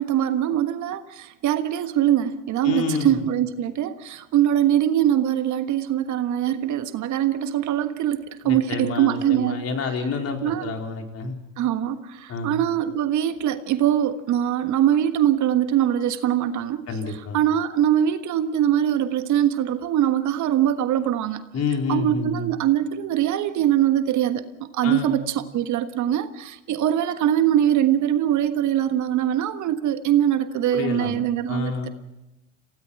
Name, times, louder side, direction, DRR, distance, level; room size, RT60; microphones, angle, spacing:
voice 1, 0.0-9.6 10.4-10.7 11.6-16.9 17.3-21.4 21.9-24.4 24.7-31.7, right 11 dB, 50° right, 10 dB, 1.5 m, -22 dB
voice 2, 2.6-3.2 8.4-11.4 12.3-12.6 16.9-17.4 21.5-22.5 24.8-25.3 30.7-31.2 31.5-31.9, left 4 dB, 40° left, 2 dB, 4.3 m, -28 dB
28.0 x 17.5 x 5.9 m, 0.95 s
hypercardioid pair, 80°, 38 cm